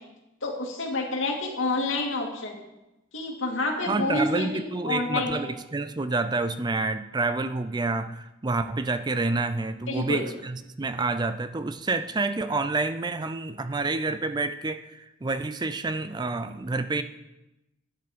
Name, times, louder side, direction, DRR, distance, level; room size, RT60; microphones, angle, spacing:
voice 1, 0.4-2.6 3.1-5.4 9.9-10.2, left 2 dB, 75° left, 0 dB, 2.5 m, -28 dB
voice 2, 3.9-17.0, right 3 dB, 20° right, 11 dB, 0.4 m, -28 dB
12.0 x 9.4 x 5.1 m, 0.96 s
head